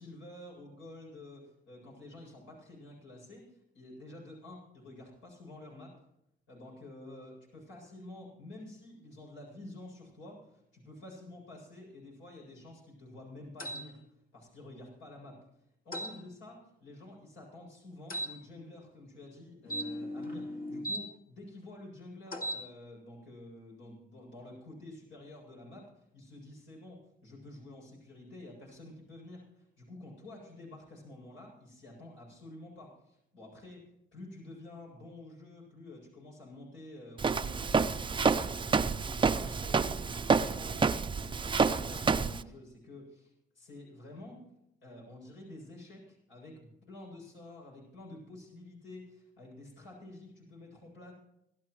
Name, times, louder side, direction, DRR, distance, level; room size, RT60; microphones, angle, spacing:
voice 1, 0.0-5.9 6.5-14.0 14.3-15.4 15.8-25.9 26.1-33.8 34.1-37.7 38.1-44.4 44.8-51.1, left 1 dB, 75° left, -2 dB, 7.8 m, -49 dB
sound 1, 13.6-13.9 15.9-16.1 18.1-18.3 19.6-21.0 22.3-22.6, equal, 45° left, 2.4 m, -37 dB
Walk footsteps, 37.2-42.4, right 5 dB, 25° right, 0.6 m, -28 dB
26.5 x 12.5 x 3.2 m, 0.81 s
cardioid pair, 90°, 20 cm